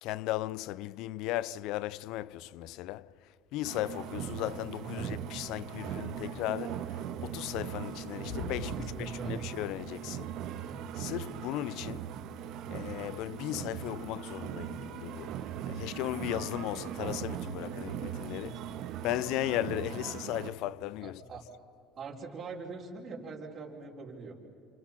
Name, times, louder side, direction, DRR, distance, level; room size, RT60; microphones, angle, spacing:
voice 1, 0.0-3.1 3.5-10.4 10.9-12.2 12.7-15.4 15.7-18.5 19.0-21.2, left 15 dB, 70° left, 0.5 m, -36 dB
sound 1, 3.6-20.5, right 9 dB, 65° right, 1.5 m, -39 dB
voice 2, 4.8-5.2 8.8-9.4 18.3-18.5 21.0-21.4 22.0-24.5, right 4 dB, 40° right, 4.5 m, -42 dB
29.5 x 27.5 x 5.9 m
supercardioid pair, 100°, 0 cm